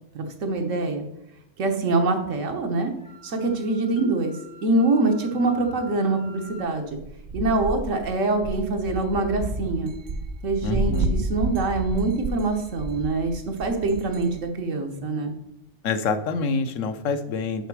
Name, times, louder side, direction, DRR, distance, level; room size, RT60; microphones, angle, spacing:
voice 1, 0.1-1.1 1.6-2.9 3.2-4.3 4.6-7.0 7.3-9.9 10.4-15.3, right 2 dB, 85° right, 4 dB, 1.4 m, -24 dB
Wind instrument woodwind instrument, 3.0-6.7, right 3 dB, 15° right, 1.9 m, -48 dB
Marimba xylophone, 4.0-5.7, right 1 dB, 35° left, 1.0 m, -45 dB
sound 1, 7.0-14.4, right 2 dB, 55° right, 0.5 m, -30 dB
voice 2, 10.6-11.2 15.8-17.7, left 4 dB, 85° left, 9 dB, 1.1 m, -26 dB
6.5 x 5.8 x 4.7 m, 0.83 s
omnidirectional pair, 1.3 m